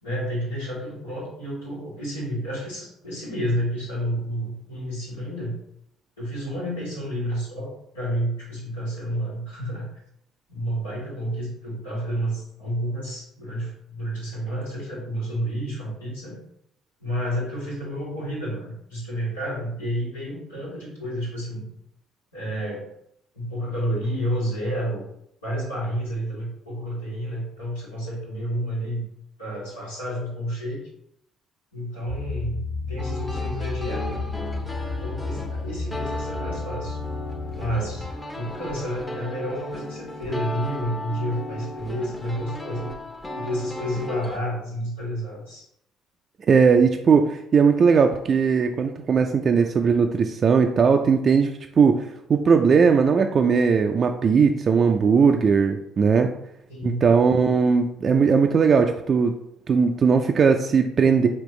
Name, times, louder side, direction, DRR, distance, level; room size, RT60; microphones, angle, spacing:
voice 1, 0.0-5.6 6.2-9.9 10.5-16.4 17.0-21.7 22.3-22.9 23.3-25.0 25.4-29.0 29.4-30.8 31.7-34.2 35.0-37.0 37.5-38.0 38.3-42.9 43.3-45.6 56.7-57.0, equal, 90° left, -8 dB, 1.7 m, -30 dB
sound 1, 32.1-38.1, left 3 dB, 60° left, 1.1 m, -32 dB
sound 2, 33.0-44.4, left 1 dB, 15° left, 0.8 m, -36 dB
voice 2, 46.5-56.3 56.8-59.4 59.7-61.3, right 5 dB, 45° right, 4 dB, 0.3 m, -19 dB
5.2 x 2.8 x 3.1 m, 0.75 s
figure-of-eight pair, 50°, 0 cm